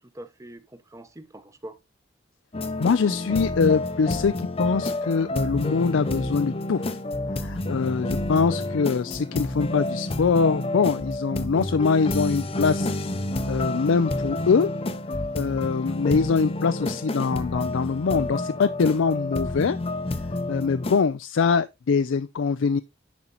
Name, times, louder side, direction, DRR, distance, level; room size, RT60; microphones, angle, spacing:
voice 1, 0.0-1.8 15.5-15.8, right 1 dB, 15° right, 0.8 m, -44 dB
sound 1, 2.5-21.0, left 2 dB, 30° left, 0.6 m, -29 dB
voice 2, 2.8-6.9 7.3-12.9 13.5-14.7 15.3-19.8 20.5-22.8, left 5 dB, 85° left, 0.4 m, -23 dB
10.5 x 4.4 x 3.8 m
head